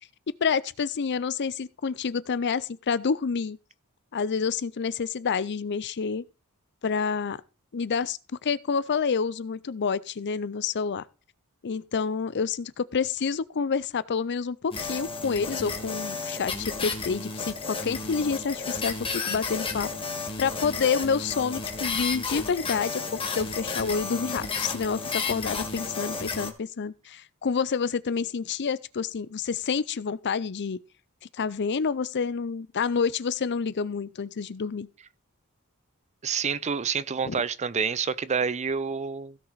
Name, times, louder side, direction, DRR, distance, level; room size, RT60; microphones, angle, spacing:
voice 1, 0.4-3.6 4.1-6.2 6.8-7.4 7.7-11.0 11.6-19.9 20.4-30.8 31.4-34.9 37.2-37.3, left 5 dB, 50° left, 0.5 m, -28 dB
sound 1, 14.7-26.5, left 4 dB, 25° left, 1.7 m, -32 dB
voice 2, 36.2-39.4, right 6 dB, 30° right, 0.5 m, -28 dB
16.0 x 5.9 x 4.0 m
head